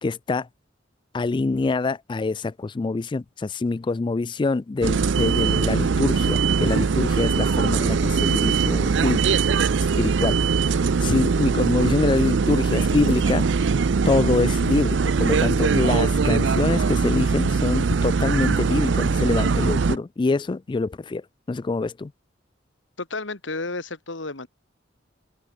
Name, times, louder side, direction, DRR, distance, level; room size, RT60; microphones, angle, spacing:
voice 1, 0.0-0.5 1.1-9.2 10.0-13.5 14.0-21.2 21.5-22.1, left 3 dB, 25° left, 0.3 m, -25 dB
sound 1, 4.8-20.0, right 5 dB, 70° right, 0.5 m, -21 dB
sound 2, 8.2-17.3, left 2 dB, 65° left, 6.2 m, -51 dB
voice 2, 23.0-24.5, left 3 dB, 85° left, 2.5 m, -32 dB
open air
head